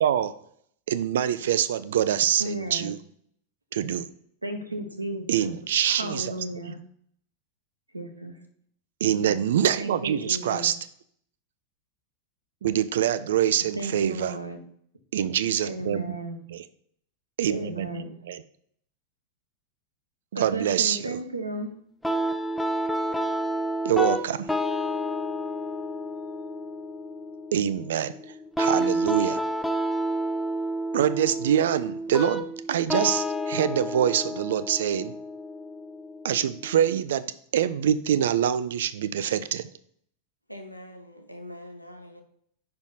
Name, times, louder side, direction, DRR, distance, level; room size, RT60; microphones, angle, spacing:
voice 1, 0.0-0.3 0.9-3.0 3.7-4.1 5.3-6.3 6.7-6.8 9.0-10.7 12.6-14.3 15.1-16.0 16.5-16.6 17.4-17.9 18.3-18.4 20.3-21.0 23.8-24.5 27.5-28.1 28.6-29.4 30.9-35.1 36.2-39.7, right 10 dB, 60° right, 14 dB, 0.4 m, -25 dB
voice 2, 2.4-2.9 4.4-5.5 5.8-6.8 7.9-8.4 9.8-10.7 13.8-14.6 15.6-16.4 17.5-18.2 20.3-21.7, right 2 dB, 85° right, 6 dB, 0.9 m, -34 dB
sound 1, 22.0-37.0, equal, 5° left, 0.6 m, -30 dB
voice 3, 40.5-42.2, left 1 dB, 90° left, 4 dB, 0.7 m, -43 dB
5.7 x 4.3 x 4.0 m, 0.65 s
figure-of-eight pair, 90°, 0 cm